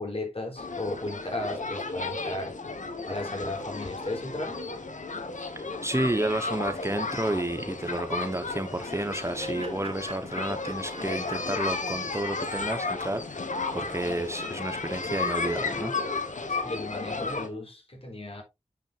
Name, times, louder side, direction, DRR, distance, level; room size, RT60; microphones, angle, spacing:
voice 1, 0.0-2.6 3.1-4.6 16.5-18.4, left 2 dB, 50° left, 3.8 m, -35 dB
sound 1, 0.6-17.5, left 3 dB, 85° left, 1.4 m, -33 dB
voice 2, 5.6-15.9, right 1 dB, 20° right, 1.1 m, -31 dB
Laughter, 8.6-13.8, right 2 dB, 50° right, 3.7 m, -46 dB
8.8 x 6.3 x 2.6 m
wide cardioid pair, 60°, 13 cm